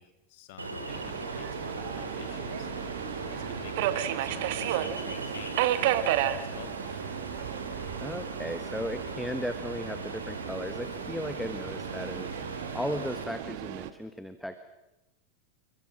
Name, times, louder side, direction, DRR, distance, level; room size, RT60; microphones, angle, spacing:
voice 1, 0.0-2.7 3.2-7.0, left 11 dB, 50° left, 9 dB, 2.3 m, -49 dB
Ocean, 0.6-13.2, right 2 dB, 80° right, 3.3 m, -39 dB
Subway metro underground, 0.9-13.9, right 12 dB, 50° right, 1.4 m, -34 dB
voice 2, 8.0-14.6, equal, ahead, 10 dB, 1.3 m, -36 dB
28.5 x 23.0 x 6.3 m, 0.97 s
figure-of-eight pair, 90°, 0 cm